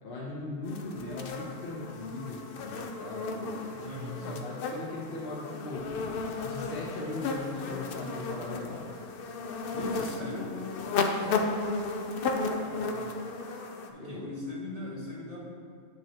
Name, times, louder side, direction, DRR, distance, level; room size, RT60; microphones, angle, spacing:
voice 1, 0.0-5.9 6.4-8.9 11.2-11.5 14.0-14.3, left 2 dB, 45° left, -6 dB, 1.0 m, -39 dB
sound 1, 0.7-13.9, left 3 dB, 65° left, 0.5 m, -34 dB
voice 2, 3.8-4.2 9.6-10.5 12.6-13.1 13.9-15.4, left 1 dB, 30° right, -6 dB, 1.1 m, -40 dB
8.9 x 6.1 x 2.9 m, 2.2 s
omnidirectional pair, 1.5 m